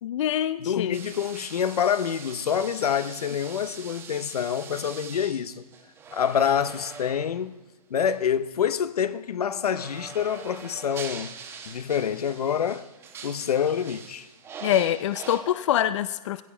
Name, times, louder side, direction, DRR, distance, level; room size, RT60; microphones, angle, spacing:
voice 1, 0.0-1.0 14.6-16.4, left 11 dB, 55° left, 0.5 m, -25 dB
voice 2, 0.6-5.6 6.1-7.6 7.9-11.4 11.7-12.9 13.2-14.3, left 8 dB, 85° left, 0.8 m, -27 dB
sound 1, 0.9-7.5 8.0-8.2 9.7-15.4, right 6 dB, 15° right, 1.0 m, -43 dB
16.5 x 14.5 x 4.4 m
hypercardioid pair, 155°, 19 cm